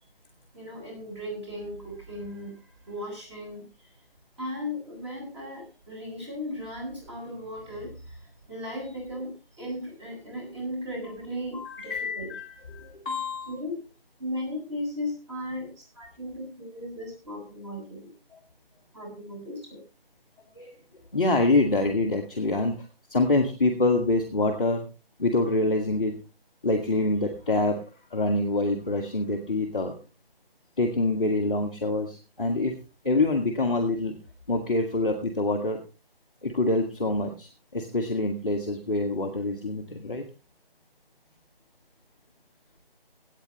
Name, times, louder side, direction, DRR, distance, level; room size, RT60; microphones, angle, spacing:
voice 1, 0.5-4.0 4.4-12.3 13.5-13.8 14.2-18.1 18.9-19.8, left 1 dB, 30° right, 0 dB, 7.1 m, -36 dB
voice 2, 11.5-13.5 20.6-20.8 21.1-22.8 23.1-24.9 25.2-26.1 26.6-27.8 28.1-29.9 30.8-32.7 33.0-34.1 34.5-35.8 36.4-40.2, left 2 dB, 5° left, -9 dB, 0.8 m, -26 dB
22.5 x 9.1 x 3.2 m, 0.31 s
figure-of-eight pair, 165°, 30 cm